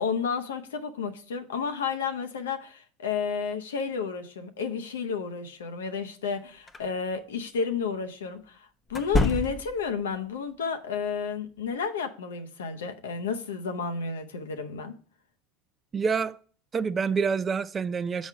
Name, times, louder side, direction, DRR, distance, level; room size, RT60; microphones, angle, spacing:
voice 1, 0.0-15.0, left 5 dB, 85° left, 0.8 m, -31 dB
sound 1, 6.7-6.9 8.9-9.9, left 2 dB, 20° left, 0.8 m, -27 dB
voice 2, 15.9-16.4 16.7-18.3, right 5 dB, 30° right, 0.4 m, -27 dB
7.1 x 4.1 x 4.7 m
hypercardioid pair, 85°, 0 cm